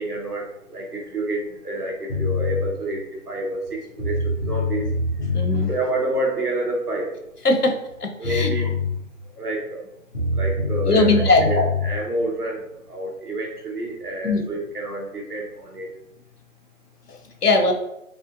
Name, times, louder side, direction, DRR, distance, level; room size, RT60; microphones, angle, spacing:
voice 1, 0.0-4.9 5.7-7.1 8.2-8.7 9.4-9.8 10.3-15.9, right 1 dB, 80° right, 0 dB, 1.1 m, -28 dB
sound 1, 2.1-2.6 3.6-3.7 4.0-5.7 7.9-8.0 8.2-8.9 10.1-11.9, left 3 dB, 40° left, 1.0 m, -24 dB
voice 2, 5.3-5.7 7.4-7.7 8.0-8.5 10.9-11.5 14.2-14.4 17.1-17.7, left 2 dB, 85° left, 4 dB, 0.8 m, -19 dB
3.4 x 2.5 x 2.5 m, 0.83 s
figure-of-eight pair, 165°, 45 cm